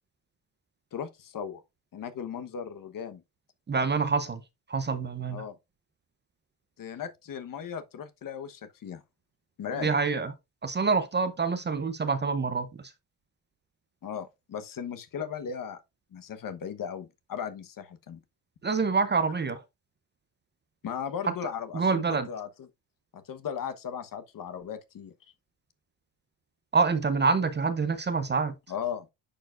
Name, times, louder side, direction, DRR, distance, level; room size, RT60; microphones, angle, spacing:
voice 1, 0.9-1.6 1.9-3.2 5.3-5.5 6.8-9.0 9.6-9.9 14.0-15.8 16.1-18.2 20.8-22.5 23.1-25.1 28.7-29.1, left 7 dB, 45° left, 1.1 m, -37 dB
voice 2, 3.7-4.4 4.7-5.4 9.8-10.3 10.6-12.9 18.6-19.6 21.2-22.3 26.7-28.5, right 4 dB, 25° right, 0.7 m, -27 dB
10.0 x 4.6 x 2.5 m
cardioid pair, 100°, 45 cm